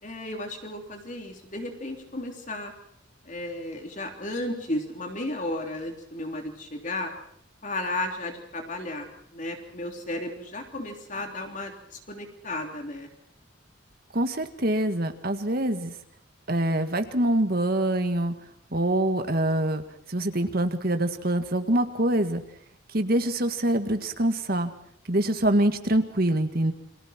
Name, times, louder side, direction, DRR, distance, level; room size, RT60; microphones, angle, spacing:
voice 1, 0.0-2.7 3.2-7.1 7.6-13.1, left 1 dB, 40° left, 3 dB, 3.5 m, -34 dB
voice 2, 14.1-15.9 16.5-18.3 18.7-19.8 20.1-22.4 22.9-24.7 25.1-26.7, right 1 dB, 50° right, 7 dB, 1.9 m, -25 dB
30.0 x 23.5 x 4.5 m, 0.68 s
head